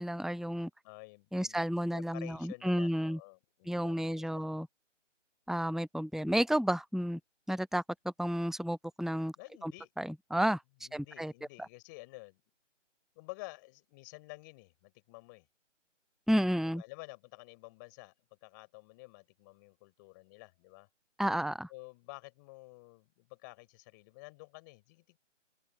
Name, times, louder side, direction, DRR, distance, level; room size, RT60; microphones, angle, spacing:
voice 1, 0.0-0.7 1.3-3.2 3.7-4.7 5.5-7.2 7.5-7.8 8.2-9.3 9.6-9.7 10.0-10.6 10.9-11.3 16.3-16.8 21.2-21.7, equal, ahead, 0.3 m, -31 dB
voice 2, 0.8-4.4 9.4-9.9 10.8-12.4 13.1-15.5 16.6-18.1 18.4-20.9 21.7-25.2, left 25 dB, 15° left, 6.4 m, -51 dB
open air
figure-of-eight pair, 165°, 37 cm